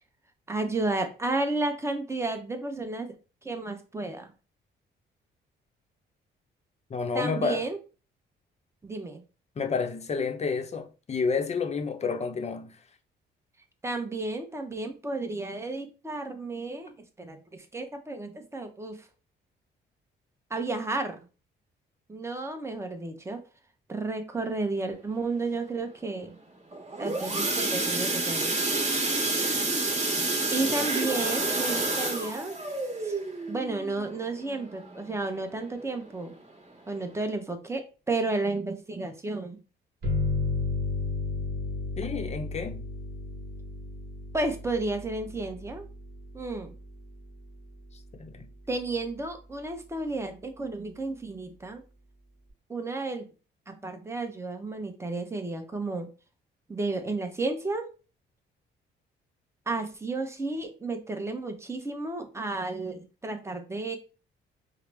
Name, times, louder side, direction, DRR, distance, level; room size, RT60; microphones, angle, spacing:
voice 1, 0.5-3.1 3.4-4.3 7.1-7.8 8.8-9.2 13.8-19.0 20.5-21.2 22.1-23.4 23.9-26.4 27.0-28.6 30.5-32.6 33.0-33.2 33.5-36.3 36.9-39.6 44.3-45.9 46.3-46.7 48.7-51.8 52.7-53.3 53.7-56.1 56.7-57.9 59.7-64.0, right 2 dB, 15° right, 0.8 m, -32 dB
voice 2, 6.9-7.6 9.6-12.8 42.0-42.8 48.1-48.5, left 5 dB, 35° left, 0.6 m, -30 dB
sound 1, 26.7-35.4 35.8-36.1 36.3-36.4 36.9-37.0, right 2 dB, 35° right, 1.2 m, -29 dB
sound 2, 40.0-49.3, left 3 dB, 50° right, 1.3 m, -34 dB
4.7 x 2.0 x 3.3 m
cardioid pair, 90°, 20 cm